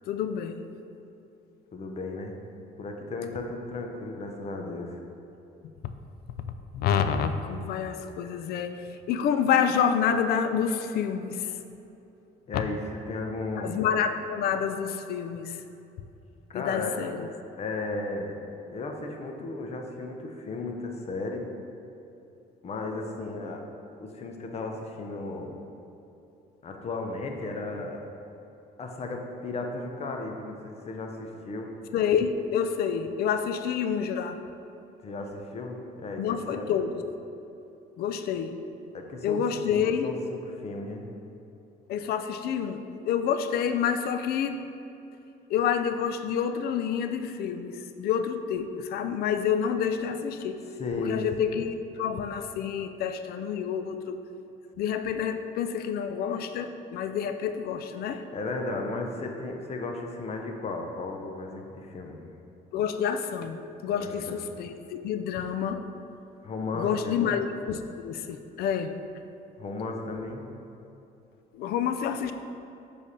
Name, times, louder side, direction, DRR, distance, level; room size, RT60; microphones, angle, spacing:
voice 1, 0.1-0.6 6.7-8.7 9.1-11.4 12.5-12.6 13.6-15.6 16.5-17.2 31.9-34.4 36.2-36.9 38.0-38.5 39.2-40.1 41.9-44.6 45.5-50.6 51.1-54.2 54.8-58.2 62.7-63.6 63.8-65.8 66.7-68.9 71.5-72.3, left 7 dB, 65° left, 9 dB, 0.4 m, -28 dB
voice 2, 1.7-2.4 2.8-5.0 12.5-14.0 16.5-17.0 17.6-18.4 18.7-21.5 22.6-23.6 24.0-25.5 26.6-28.0 28.8-31.8 35.0-36.9 38.9-39.4 39.7-41.1 50.8-51.2 58.3-62.2 63.9-64.4 66.4-67.4 69.6-70.5, left 3 dB, 40° left, 3 dB, 0.7 m, -35 dB
7.2 x 3.4 x 4.1 m, 2.8 s
cardioid pair, 110°, 17 cm